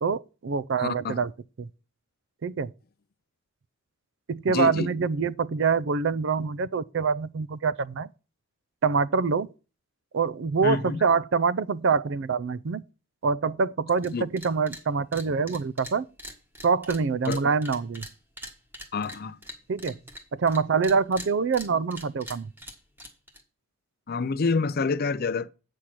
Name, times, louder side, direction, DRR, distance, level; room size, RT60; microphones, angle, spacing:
voice 1, 0.0-1.3 1.6-1.7 2.4-2.7 4.3-8.1 8.8-9.5 10.1-12.8 13.2-16.0 16.6-18.1 19.7-20.0 20.3-22.5, right 5 dB, 55° right, 0.4 m, -25 dB
voice 2, 0.8-1.2 4.5-4.9 10.6-11.0 14.1-14.2 17.3-17.4 18.9-19.4 24.1-25.5, left 4 dB, 45° left, 0.5 m, -27 dB
sound 1, 14.0-14.1 14.4-14.8 15.1-20.6 20.8-23.4, equal, 10° right, 1.5 m, -42 dB
8.5 x 6.4 x 5.9 m
head